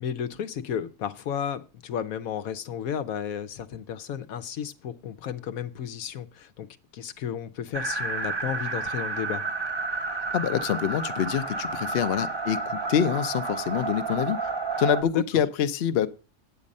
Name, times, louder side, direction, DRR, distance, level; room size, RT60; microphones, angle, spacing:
voice 1, 0.0-6.7 6.9-9.4 15.1-15.2, left 8 dB, 85° left, 1.2 m, -33 dB
sound 1, 7.7-15.0, right 3 dB, 25° right, 0.7 m, -31 dB
voice 2, 10.3-14.4 14.8-16.1, left 9 dB, 55° left, 0.8 m, -26 dB
9.0 x 8.5 x 5.3 m
omnidirectional pair, 1.4 m